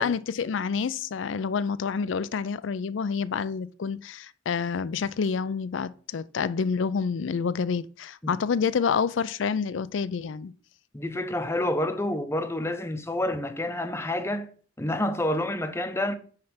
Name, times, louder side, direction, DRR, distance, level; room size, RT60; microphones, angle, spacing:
voice 1, 0.0-10.5, left 6 dB, 85° left, 0.4 m, -28 dB
voice 2, 10.9-14.5 14.8-16.2, left 1 dB, 15° left, 0.7 m, -28 dB
9.4 x 3.3 x 5.8 m
head